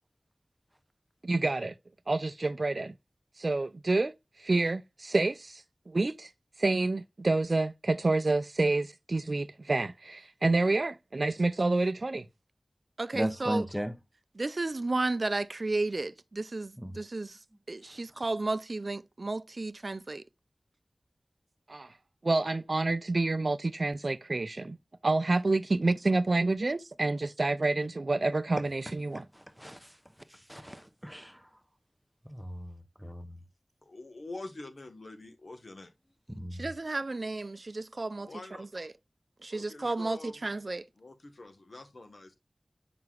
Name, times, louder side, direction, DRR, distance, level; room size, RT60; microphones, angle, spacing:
voice 1, 1.2-1.7 2.1-2.9 3.4-4.1 4.4-5.6 5.9-6.3 6.6-12.3 13.0-13.6 14.4-17.4 17.7-20.2 21.7-21.9 22.2-24.8 25.0-29.3 36.6-38.3 38.6-38.9 39.4-40.8, right 2 dB, 60° right, 0.4 m, -29 dB
voice 2, 13.1-13.9 16.8-17.0 29.6-29.8 30.5-31.4 32.3-32.8 33.0-33.4 36.3-36.6, equal, ahead, 0.8 m, -35 dB
voice 3, 33.8-35.9 38.2-38.7 39.5-40.4 41.0-42.4, left 2 dB, 70° left, 1.2 m, -45 dB
7.6 x 5.8 x 2.3 m
wide cardioid pair, 60°, 0 cm